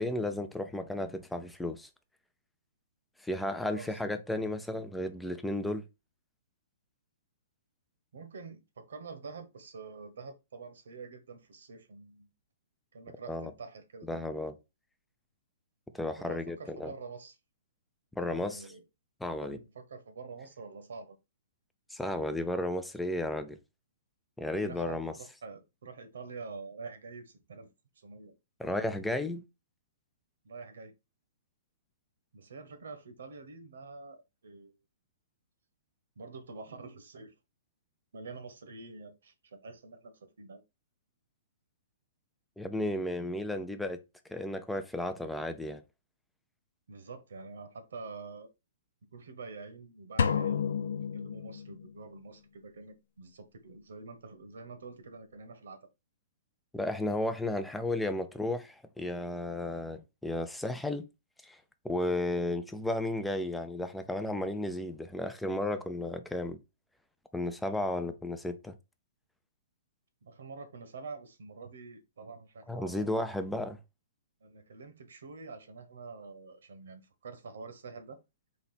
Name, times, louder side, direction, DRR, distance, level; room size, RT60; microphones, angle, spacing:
voice 1, 0.0-1.9 3.2-5.8 13.3-13.5 14.1-14.6 15.9-16.9 18.2-18.6 19.2-19.6 21.9-23.6 24.4-25.1 28.6-29.4 42.6-44.0 44.3-45.8 56.7-61.1 61.4-61.6 61.8-66.6 67.3-68.7 72.7-73.8, left 1 dB, 5° left, 0.4 m, -33 dB
voice 2, 8.1-12.3 12.9-14.1 16.2-17.4 18.2-18.8 19.4-21.2 24.6-27.7 27.9-28.4 28.6-28.9 30.4-30.9 32.3-34.7 36.2-37.3 38.1-40.6 46.9-48.5 49.1-55.9 70.2-73.2 74.4-78.2, right 4 dB, 80° right, 1.1 m, -47 dB
sound 1, 50.2-52.0, left 7 dB, 75° left, 0.5 m, -30 dB
4.1 x 2.9 x 4.2 m
hypercardioid pair, 155°, 0 cm